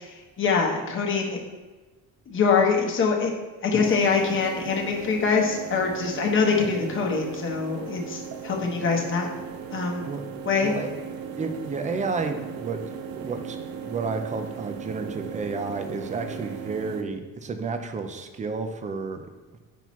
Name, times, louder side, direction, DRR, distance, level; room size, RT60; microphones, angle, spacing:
voice 1, 0.0-1.4 2.3-3.3 3.6-9.3 9.7-10.1 10.4-10.7, left 5 dB, 35° left, 0 dB, 0.9 m, -24 dB
sound 1, 3.8-17.0, right 6 dB, 70° right, 0.7 m, -37 dB
voice 2, 11.3-13.6 13.8-19.6, right 4 dB, 20° right, 7 dB, 0.4 m, -31 dB
7.1 x 5.8 x 3.0 m, 1.2 s
cardioid pair, 175°, 36 cm